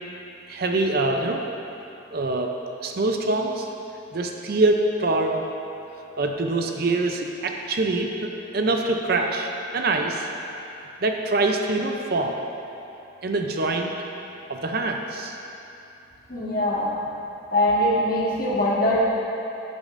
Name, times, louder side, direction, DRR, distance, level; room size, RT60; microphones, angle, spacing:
voice 1, 0.5-1.4 2.1-2.6 2.8-3.7 4.1-5.4 6.2-10.3 11.0-12.4 13.2-13.9 14.5-15.3, right 2 dB, 50° right, 3 dB, 0.5 m, -24 dB
voice 2, 16.3-16.9 17.5-19.0, left 1 dB, 45° left, -7 dB, 1.6 m, -22 dB
10.5 x 8.4 x 2.5 m, 2.8 s
head